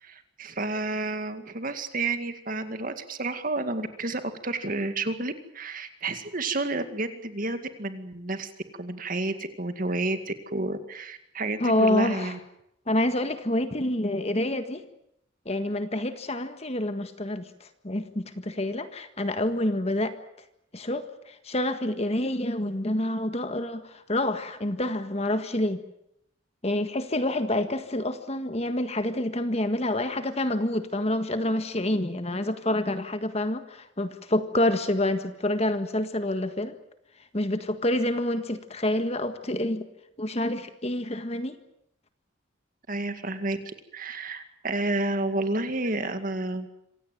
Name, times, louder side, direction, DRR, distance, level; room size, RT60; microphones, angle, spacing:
voice 1, 0.0-8.5 8.8-12.4 42.9-43.6 43.9-46.7, right 2 dB, 45° right, 9 dB, 2.1 m, -30 dB
voice 2, 11.6-12.3 12.9-14.8 15.4-20.1 20.7-25.8 26.6-36.7 37.3-39.8 40.2-41.6, left 1 dB, 30° left, 9 dB, 1.7 m, -27 dB
26.0 x 17.0 x 9.3 m, 0.78 s
head